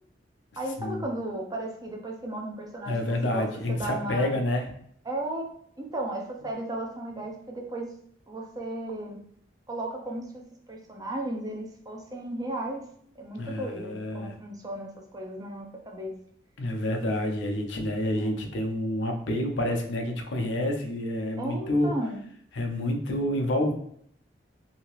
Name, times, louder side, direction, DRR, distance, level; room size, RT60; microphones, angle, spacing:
voice 1, 0.6-4.5 5.1-7.9 8.3-9.2 9.7-10.4 10.7-12.8 13.2-16.2 18.2-18.4 21.4-22.2, right 1 dB, 20° right, 1 dB, 0.5 m, -35 dB
voice 2, 2.9-4.7 13.4-14.3 16.6-21.9 22.5-23.7, left 1 dB, 85° left, 3 dB, 0.6 m, -28 dB
2.8 x 2.8 x 3.0 m, 0.66 s
head